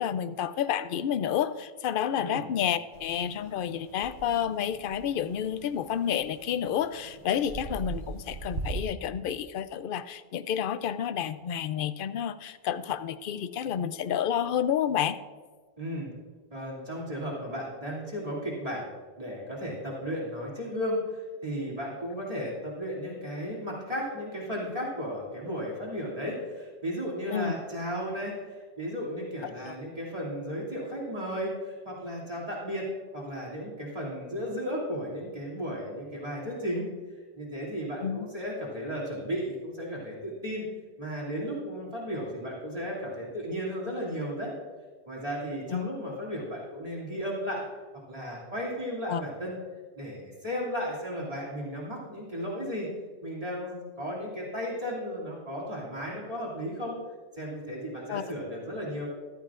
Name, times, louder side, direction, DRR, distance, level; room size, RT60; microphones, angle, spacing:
voice 1, 0.0-15.2 27.3-27.5 29.4-29.7 38.0-38.3 45.7-45.9 49.1-49.2 58.1-58.2, left 9 dB, 60° left, 13 dB, 0.7 m, -30 dB
voice 2, 2.2-2.5 15.8-16.1 16.5-18.9 19.2-32.9 33.1-36.9 37.4-40.7 41.0-44.5 45.1-47.7 48.1-49.5 50.0-52.9 53.2-57.0 57.4-59.1, equal, 35° right, -6 dB, 2.7 m, -34 dB
sound 1, 2.9-8.8, right 3 dB, 55° right, 1.0 m, -41 dB
14.0 x 13.0 x 2.5 m, 1.5 s
omnidirectional pair, 1.1 m